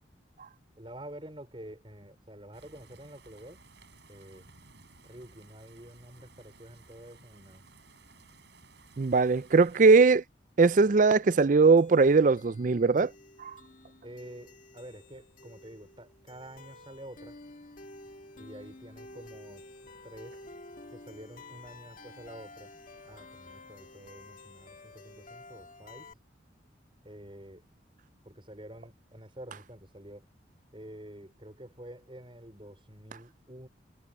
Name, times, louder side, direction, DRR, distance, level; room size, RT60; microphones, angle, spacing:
voice 1, 0.8-3.6 4.1-4.5 5.0-7.6 14.0-17.4 18.4-19.7 20.0-20.4 20.9-22.7 23.0-26.1 27.0-27.7 28.2-30.3 30.7-33.7, right 1 dB, 30° right, 5.3 m, -48 dB
sound 1, 2.5-9.8, right 3 dB, 65° right, 7.6 m, -57 dB
voice 2, 9.0-10.2 10.6-13.1 13.4-13.5, right 4 dB, 45° right, 0.4 m, -20 dB
sound 2, 11.8-26.1, left 2 dB, 45° left, 2.0 m, -51 dB
head